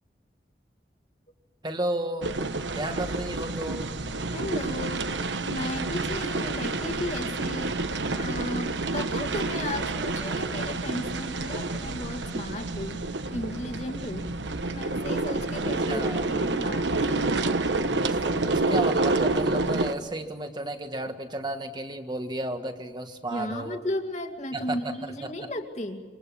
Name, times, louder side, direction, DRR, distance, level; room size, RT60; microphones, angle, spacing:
voice 1, 1.6-2.3 2.7-4.0 15.6-16.3 17.9-23.8 24.5-25.5, right 1 dB, 25° right, 7 dB, 1.7 m, -33 dB
sound 1, 2.2-19.9, right 3 dB, 80° right, 1.2 m, -28 dB
voice 2, 4.3-5.1 5.4-7.8 8.1-13.0 13.3-14.3 14.6-17.8 23.3-26.0, left 1 dB, 40° left, 5 dB, 2.2 m, -35 dB
27.0 x 25.5 x 7.3 m, 1.4 s
head